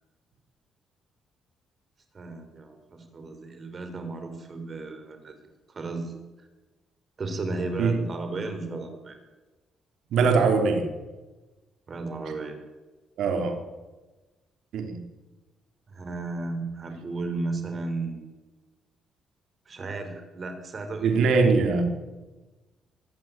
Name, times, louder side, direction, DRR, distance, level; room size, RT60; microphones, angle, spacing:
voice 1, 2.1-5.4 5.7-6.1 7.2-9.2 11.9-12.6 15.9-18.2 19.7-21.5, right 3 dB, 40° right, 7 dB, 5.8 m, -34 dB
voice 2, 10.1-10.9 13.2-13.6 14.7-15.0 21.0-21.8, right 4 dB, 75° right, 4 dB, 4.3 m, -22 dB
23.5 x 16.0 x 9.5 m, 1.2 s
cardioid pair, 90°, 0 cm